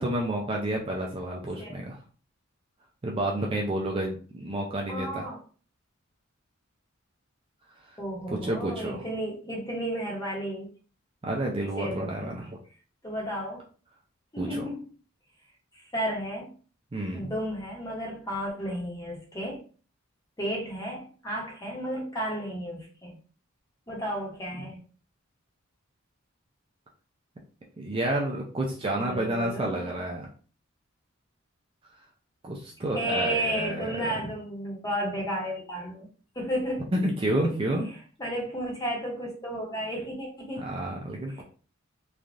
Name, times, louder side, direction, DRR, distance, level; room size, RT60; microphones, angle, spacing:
voice 1, 0.0-2.0 3.0-5.3 7.9-8.0 8.3-9.1 11.2-12.5 14.4-14.6 16.9-17.3 27.8-30.3 32.4-33.9 34.2-34.3 36.9-37.9 40.6-41.4, right 1 dB, 25° right, 0 dB, 0.4 m, -30 dB
voice 2, 4.9-5.4 8.0-10.7 11.8-12.3 13.0-13.6 14.3-14.8 15.9-16.5 17.1-19.6 20.4-23.2 23.9-24.8 29.0-30.0 32.9-36.1 36.3-36.8 38.2-40.7 41.3-41.4, equal, 20° left, -2 dB, 1.0 m, -33 dB
3.2 x 2.3 x 2.5 m, 0.39 s
head